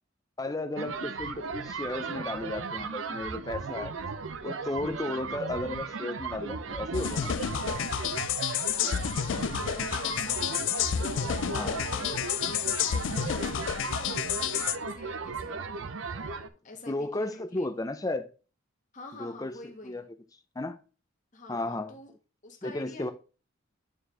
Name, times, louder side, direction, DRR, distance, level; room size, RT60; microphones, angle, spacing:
voice 1, 0.4-3.9 4.4-7.4 11.5-11.8 16.9-18.3 19.2-19.5 19.8-20.0 20.6-20.8 21.5-21.9 22.6-23.1, left 2 dB, 20° left, 0.6 m, -34 dB
sound 1, 0.8-16.5, right 4 dB, 75° right, 0.6 m, -36 dB
sound 2, 6.9-14.8, left 9 dB, 65° left, 0.4 m, -30 dB
voice 2, 8.7-12.8 13.1-15.6 16.1-17.9 18.9-20.1 21.3-22.1 22.4-23.1, left 2 dB, 40° left, 1.5 m, -48 dB
8.9 x 4.6 x 3.3 m
head